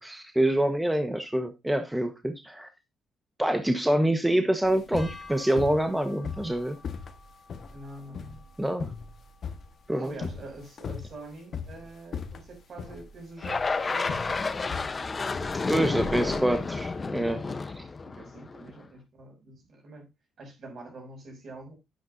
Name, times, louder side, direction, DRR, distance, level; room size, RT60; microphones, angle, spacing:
voice 1, 0.0-2.7 3.4-6.8 8.6-8.9 9.9-10.1 15.5-17.4 17.8-17.9, right 1 dB, 10° right, 1.2 m, -26 dB
sound 1, 4.6-16.9, left 5 dB, 55° left, 1.4 m, -39 dB
sound 2, 5.0-11.3, left 3 dB, 10° left, 3.8 m, -52 dB
voice 2, 7.7-8.5 9.9-14.6 15.6-16.7 17.4-17.7 18.0-20.1 20.4-21.8, right 2 dB, 55° right, 6.1 m, -45 dB
sound 3, 13.4-18.7, left 4 dB, 30° left, 0.8 m, -31 dB
11.0 x 9.6 x 2.7 m
cardioid pair, 90°, 0 cm